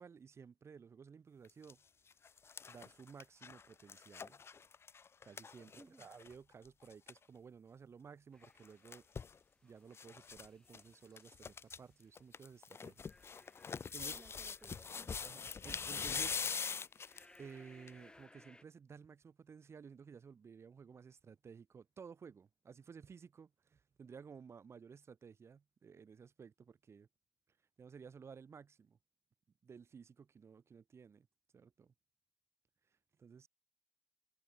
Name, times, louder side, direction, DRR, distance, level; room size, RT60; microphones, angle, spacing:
voice 1, 0.0-1.8 2.7-4.4 5.2-9.0 9.6-13.0 13.3-13.4 13.9-14.2 15.2-16.4 17.4-27.1 27.8-29.0 29.6-31.3 31.5-31.9 32.9-33.5, right 6 dB, 90° right, 2.9 m, -55 dB
sound 1, 1.4-1.7 2.1-6.3 6.6-6.7 6.9-7.2 8.4-9.4 9.9-10.5 10.7-10.8 11.2-11.8 12.2-17.4 17.9-18.0, left 6 dB, 70° left, 0.5 m, -43 dB
voice 2, 5.8-6.1 14.0-15.1, right 2 dB, 30° right, 4.8 m, -60 dB
sound 2, 8.3-18.6, left 1 dB, 20° left, 4.7 m, -67 dB
wide cardioid pair, 85°, 4 cm